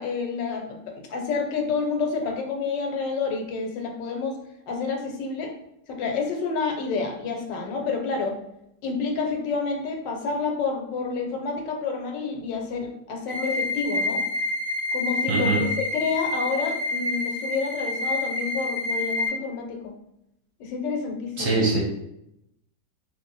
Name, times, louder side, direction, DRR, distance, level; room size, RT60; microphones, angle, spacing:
voice 1, 0.0-4.4 4.7-5.5 5.9-8.4 8.8-14.2 14.9-19.9 20.6-21.6, left 4 dB, 80° left, 3 dB, 1.3 m, -29 dB
sound 1, 13.3-19.3, left 2 dB, 20° right, 0.9 m, -28 dB
voice 2, 15.3-15.6 21.4-21.8, right 3 dB, 55° right, -2 dB, 1.0 m, -22 dB
3.2 x 2.7 x 3.8 m, 0.81 s
omnidirectional pair, 1.9 m